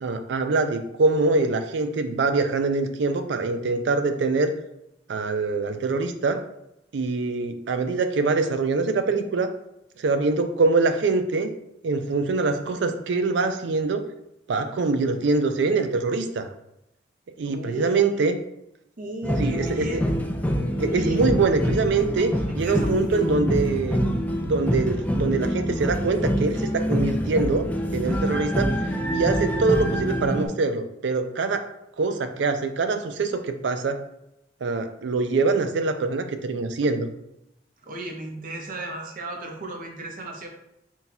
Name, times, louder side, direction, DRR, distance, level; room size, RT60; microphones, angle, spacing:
voice 1, 0.0-4.5 5.1-6.4 6.9-9.5 10.0-11.5 11.8-14.0 14.5-16.5 17.4-18.4 19.4-20.0 20.8-24.0 24.4-28.7 29.1-31.7 32.0-34.0 34.6-37.1, right 3 dB, 70° right, 8 dB, 0.4 m, -24 dB
voice 2, 17.4-18.2 19.0-20.1 20.8-21.2 22.5-23.3 37.8-40.5, right 1 dB, 50° right, 1 dB, 0.7 m, -35 dB
sound 1, 19.2-30.5, equal, 10° left, 0.4 m, -26 dB
4.0 x 2.3 x 4.0 m, 0.84 s
head